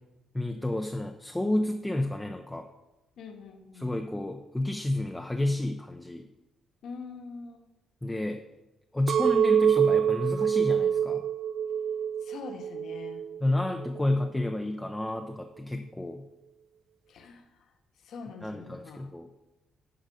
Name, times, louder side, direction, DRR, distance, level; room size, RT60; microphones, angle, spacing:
voice 1, 0.3-2.7 3.7-6.3 8.0-8.4 8.9-11.2 13.4-16.3 18.4-19.4, left 1 dB, 5° left, 4 dB, 0.4 m, -30 dB
voice 2, 3.2-3.9 6.8-7.7 12.2-13.2 17.1-17.7 18.0-19.1, left 4 dB, 60° left, 4 dB, 1.1 m, -44 dB
Chink clink, 9.1-13.4 13.8-14.4, right 8 dB, 55° right, 0.3 m, -26 dB
10.5 x 5.1 x 5.3 m, 1.0 s
cardioid pair, 160°, 0 cm